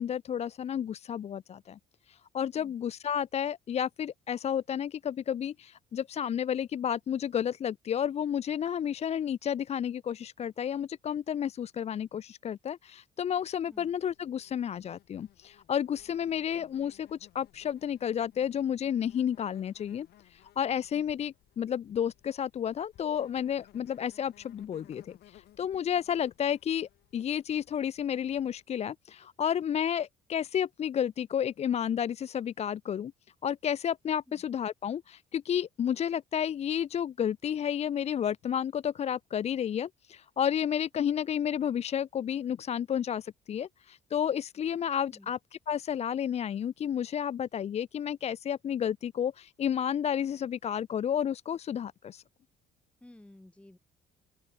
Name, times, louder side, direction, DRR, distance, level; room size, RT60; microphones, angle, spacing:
voice 1, 0.0-1.8 2.1-33.1 33.4-45.4 45.7-52.2, left 9 dB, 40° left, 0.6 m, -31 dB
Insect, 13.5-28.6, left 14 dB, 70° left, 6.2 m, -61 dB
voice 2, 53.0-53.8, left 1 dB, 5° left, 2.1 m, -54 dB
open air
cardioid pair, 110°, 17 cm